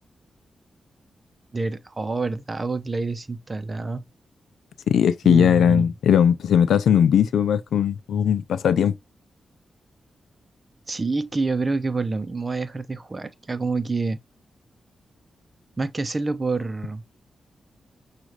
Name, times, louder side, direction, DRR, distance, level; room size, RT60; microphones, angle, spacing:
voice 1, 1.5-4.0 5.3-5.8 10.9-14.2 15.8-17.0, right 3 dB, 35° right, 0.7 m, -27 dB
voice 2, 4.9-8.9, left 8 dB, 85° left, 0.4 m, -19 dB
6.3 x 2.5 x 3.0 m
cardioid pair, 65°, 0 cm